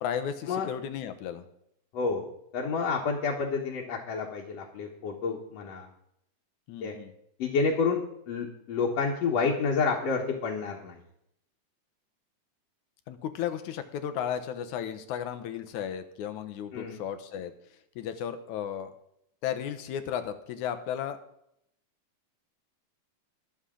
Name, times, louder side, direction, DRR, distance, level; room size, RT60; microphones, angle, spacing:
voice 1, 0.0-1.5 6.7-7.1 13.1-17.5 18.0-18.9 19.4-21.2, left 9 dB, 85° left, 10 dB, 2.4 m, -34 dB
voice 2, 1.9-2.3 2.5-5.9 6.8-6.9 7.4-8.0 8.3-11.0 16.7-17.0, left 4 dB, 65° left, -2 dB, 2.4 m, -29 dB
21.5 x 7.2 x 3.8 m, 0.77 s
omnidirectional pair, 3.3 m